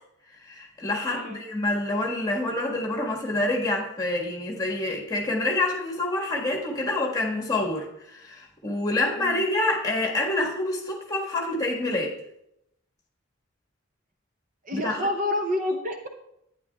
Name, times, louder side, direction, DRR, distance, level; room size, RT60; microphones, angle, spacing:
voice 1, 0.4-12.1 14.7-15.0, left 2 dB, 15° left, -1 dB, 1.6 m, -27 dB
voice 2, 1.1-1.4 9.1-9.4 14.6-16.1, left 1 dB, 40° right, 4 dB, 0.7 m, -28 dB
11.5 x 9.6 x 2.3 m, 0.79 s
head